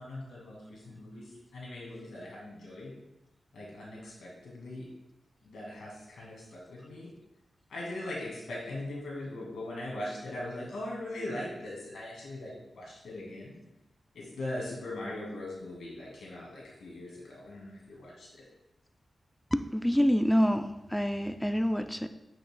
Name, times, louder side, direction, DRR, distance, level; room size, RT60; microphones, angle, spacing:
voice 1, 0.0-2.9 3.5-4.9 5.4-7.1 7.7-13.5 14.1-18.4, left 1 dB, 90° left, -3 dB, 2.0 m, -40 dB
voice 2, 19.5-22.1, equal, 5° left, 8 dB, 0.4 m, -27 dB
8.5 x 5.8 x 2.2 m, 0.91 s
cardioid pair, 55°, 0 cm